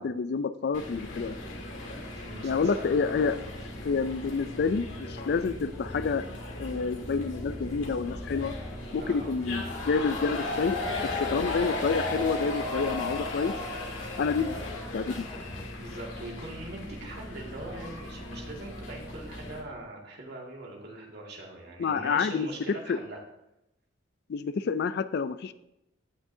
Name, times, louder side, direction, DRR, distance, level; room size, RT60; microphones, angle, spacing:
voice 1, 0.0-1.4 2.4-3.3 3.8-6.3 6.6-8.5 8.9-13.5 14.2-14.6 14.9-15.3 21.8-22.5 22.9-23.0 24.3-25.5, left 5 dB, 55° left, 14 dB, 0.4 m, -28 dB
sound 1, 0.7-19.6, left 2 dB, 80° left, 1.9 m, -36 dB
voice 2, 1.8-3.3 9.0-9.3 15.8-23.2, right 1 dB, 60° right, -1 dB, 2.0 m, -42 dB
sound 2, 3.1-15.6, left 1 dB, 20° left, 1.9 m, -45 dB
16.0 x 6.1 x 2.7 m, 0.87 s
head